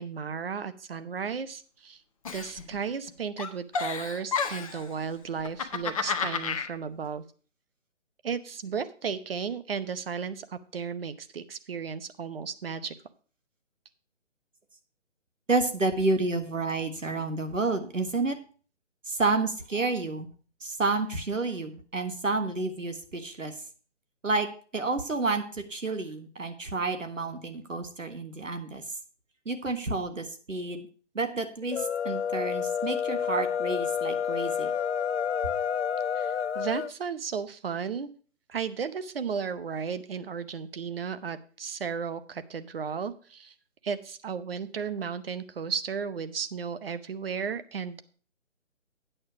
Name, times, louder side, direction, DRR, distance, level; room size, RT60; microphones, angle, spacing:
voice 1, 0.0-2.0 2.3-7.2 8.2-12.9 36.1-38.1 38.5-43.5 43.8-48.0, right 6 dB, 50° right, 12 dB, 0.9 m, -34 dB
Giggle, 2.2-3.1 3.4-4.8 5.4-6.7, left 5 dB, 30° left, 0.8 m, -31 dB
voice 2, 15.5-18.4 19.0-20.3 20.6-23.5 24.2-24.5 24.7-28.8 29.4-30.9 31.1-34.7, right 3 dB, 90° right, 8 dB, 1.6 m, -30 dB
sound 1, 31.6-36.9, left 8 dB, 65° left, 0.5 m, -29 dB
8.9 x 6.6 x 5.8 m, 0.40 s
figure-of-eight pair, 145°, 37 cm